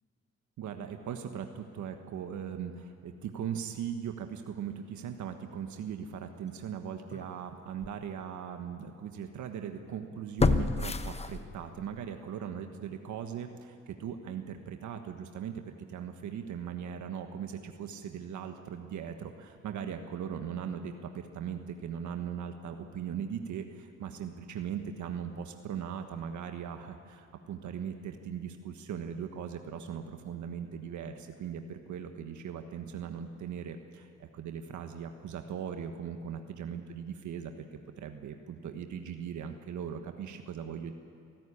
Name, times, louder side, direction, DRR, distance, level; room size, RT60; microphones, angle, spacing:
voice 1, 0.6-40.9, right 8 dB, 75° right, 6 dB, 1.4 m, -39 dB
sound 1, 7.1-7.2 7.8-7.9 10.4-11.8 12.2-12.3, left 3 dB, 20° left, 1.0 m, -28 dB
24.5 x 14.0 x 9.9 m, 2.5 s
cardioid pair, 90°, 30 cm